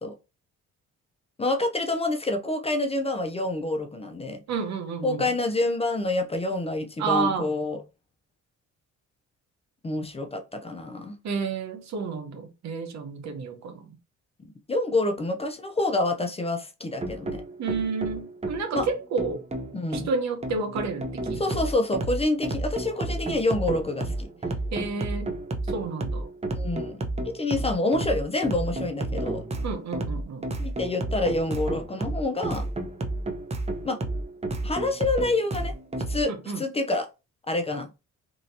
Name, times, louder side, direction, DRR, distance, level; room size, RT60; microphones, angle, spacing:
voice 1, 1.4-4.4 5.0-7.8 9.8-11.2 14.4-17.4 18.7-18.9 19.7-20.1 21.4-24.3 26.5-27.0 27.2-29.4 30.6-32.7 33.8-34.0 34.6-35.7 36.1-37.1 37.5-37.9, left 2 dB, 20° left, 0.5 m, -27 dB
voice 2, 4.5-5.3 7.0-7.5 11.2-14.0 17.6-19.5 19.9-21.6 24.7-25.3 25.7-26.3 29.6-30.5 36.3-36.6, right 4 dB, 65° right, 0.9 m, -30 dB
sound 1, 17.0-36.2, right 2 dB, 20° right, 0.7 m, -31 dB
3.0 x 2.8 x 2.7 m
cardioid pair, 90°, 30 cm